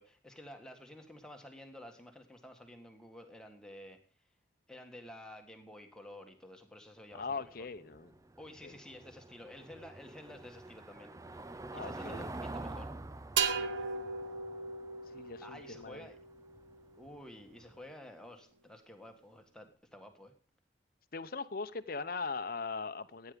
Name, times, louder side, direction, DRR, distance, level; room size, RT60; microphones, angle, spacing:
voice 1, 0.0-4.0 4.7-7.5 8.4-11.4 11.7-12.9 13.7-13.8 15.4-16.2 17.0-20.3, left 1 dB, 5° left, 3 dB, 1.8 m, -51 dB
voice 2, 7.1-8.1 8.6-8.8 11.7-12.3 15.1-16.1 21.1-23.3, left 4 dB, 50° left, 12 dB, 0.8 m, -40 dB
Car passing by / Engine, 7.1-17.8, right 2 dB, 15° right, 0.5 m, -47 dB
sound 1, 13.4-17.0, right 5 dB, 90° right, 1.3 m, -37 dB
14.5 x 9.6 x 5.1 m, 0.41 s
head